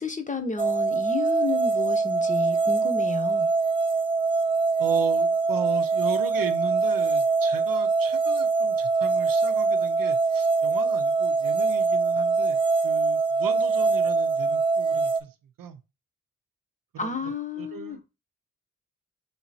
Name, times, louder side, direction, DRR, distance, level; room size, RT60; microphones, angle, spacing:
voice 1, 0.0-3.5 17.0-18.0, left 4 dB, 25° left, 0.8 m, -32 dB
sound 1, 0.6-15.2, right 4 dB, 15° right, 0.4 m, -23 dB
voice 2, 4.8-15.8 16.9-18.0, right 8 dB, 85° right, 0.6 m, -37 dB
3.3 x 2.9 x 4.1 m
cardioid pair, 50°, 33 cm